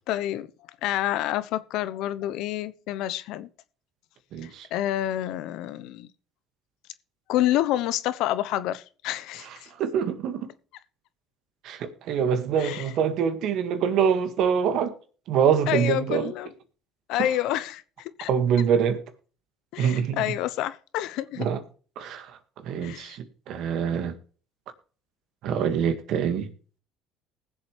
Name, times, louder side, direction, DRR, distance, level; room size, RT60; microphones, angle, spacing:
voice 1, 0.1-0.5 0.8-3.5 4.4-6.1 7.3-9.7 12.6-12.9 15.7-16.5 17.1-18.3 19.7-21.5 22.8-23.2, left 13 dB, 70° left, 0.9 m, -28 dB
voice 2, 4.3-4.7 9.8-10.5 11.6-14.9 15.3-16.3 17.2-17.3 18.3-19.0 19.8-20.2 21.4-21.6 22.0-22.4 22.6-24.1 25.4-26.5, right 7 dB, 65° right, 1.9 m, -25 dB
20.0 x 7.6 x 3.3 m
supercardioid pair, 80°, 0 cm